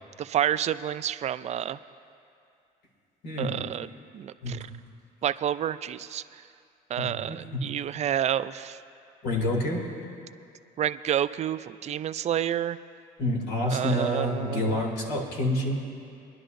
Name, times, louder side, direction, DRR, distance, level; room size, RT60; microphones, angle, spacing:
voice 1, 0.2-1.8 3.4-3.9 4.1-4.6 5.2-6.2 6.9-8.8 10.8-12.8 13.7-14.8, right 10 dB, 40° right, 13 dB, 0.4 m, -29 dB
voice 2, 7.0-7.6 9.2-9.8 13.2-15.8, left 1 dB, 80° left, -1 dB, 2.7 m, -28 dB
23.5 x 11.0 x 2.6 m, 2.5 s
cardioid pair, 110°, 17 cm